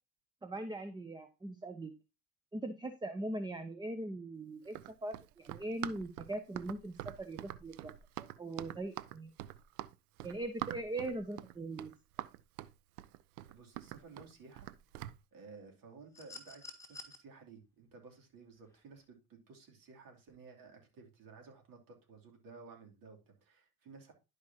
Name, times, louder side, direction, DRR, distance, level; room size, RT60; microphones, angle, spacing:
voice 1, 0.4-1.9 2.5-9.3 10.2-11.9, right 2 dB, 10° right, 0.8 m, -41 dB
Run, 4.7-15.2, right 14 dB, 85° right, 0.6 m, -45 dB
voice 2, 13.5-14.7 15.3-24.1, right 4 dB, 50° right, 2.9 m, -55 dB
sound 1, 16.1-17.2 18.7-18.8, left 3 dB, 5° left, 1.8 m, -49 dB
11.5 x 4.9 x 2.8 m
supercardioid pair, 90°, 42 cm